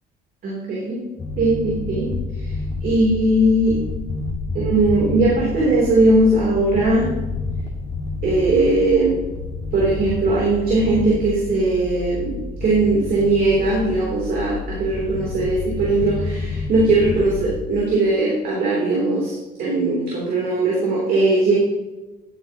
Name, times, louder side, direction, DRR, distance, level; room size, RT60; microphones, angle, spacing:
voice 1, 0.4-1.0 1.4-2.1 2.4-2.5 2.8-3.7 4.5-7.1 8.2-9.2 9.7-21.5, right 2 dB, 60° right, -5 dB, 3.3 m, -19 dB
sound 1, 1.2-17.5, left 3 dB, 30° left, 1.9 m, -29 dB
12.0 x 8.9 x 3.0 m, 1.1 s
cardioid pair, 110°, 17 cm